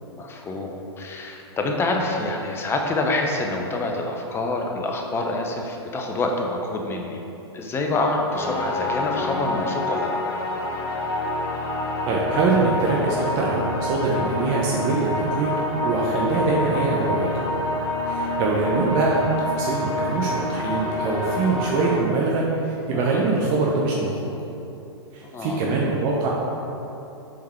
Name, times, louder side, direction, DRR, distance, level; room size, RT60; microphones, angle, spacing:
voice 1, 0.0-7.2 7.5-10.2 22.9-23.2 25.3-25.6, left 2 dB, 15° left, 2 dB, 0.7 m, -27 dB
sound 1, 8.3-22.0, left 2 dB, 45° left, 1.3 m, -27 dB
voice 2, 12.1-15.5 15.8-17.3 18.0-24.3 25.1-26.3, right 3 dB, 35° right, -3 dB, 0.8 m, -23 dB
7.5 x 3.8 x 4.4 m, 2.9 s
hypercardioid pair, 115°, 15 cm